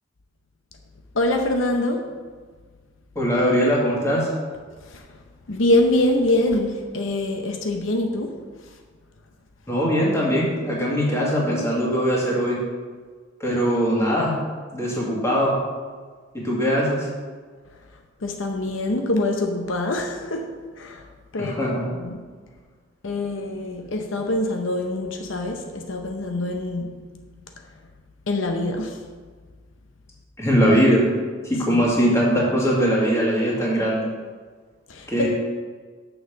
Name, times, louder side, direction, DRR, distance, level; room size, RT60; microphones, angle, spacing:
voice 1, 1.1-2.0 4.8-5.2 5.5-8.4 8.6-8.7 17.7-17.8 18.2-20.5 20.8-21.1 21.3-22.2 23.0-27.0 27.6-27.7 28.3-29.0 31.7-31.9 34.9-35.3, left 1 dB, 75° left, 3 dB, 0.8 m, -24 dB
voice 2, 3.2-4.3 9.7-12.6 13.4-14.3 14.7-15.5 16.3-17.1 21.4-21.8 30.4-31.1 31.4-34.0 35.1-35.3, equal, 15° left, -4 dB, 2.1 m, -21 dB
6.7 x 5.6 x 7.0 m, 1.5 s
head